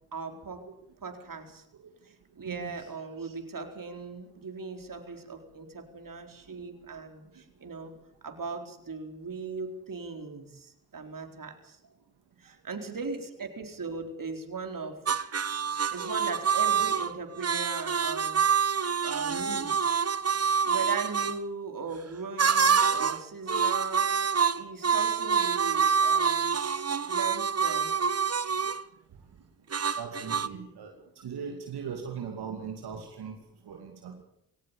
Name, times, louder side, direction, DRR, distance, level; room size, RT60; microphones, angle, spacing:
voice 1, 0.1-0.6 1.0-1.6 2.0-7.9 8.2-11.8 12.4-15.0 15.9-18.6 19.0-20.0 20.6-26.5 27.1-27.9, right 4 dB, 55° right, 6 dB, 4.4 m, -39 dB
voice 2, 2.4-2.9 29.1-29.2 30.0-33.4 33.6-34.2, right 6 dB, 85° right, 3 dB, 2.6 m, -39 dB
sound 1, 15.1-21.3 22.4-23.2 23.5-28.8 29.7-30.5, right 6 dB, 40° right, 1.2 m, -26 dB
21.5 x 18.0 x 8.5 m, 0.73 s
supercardioid pair, 45°, 38 cm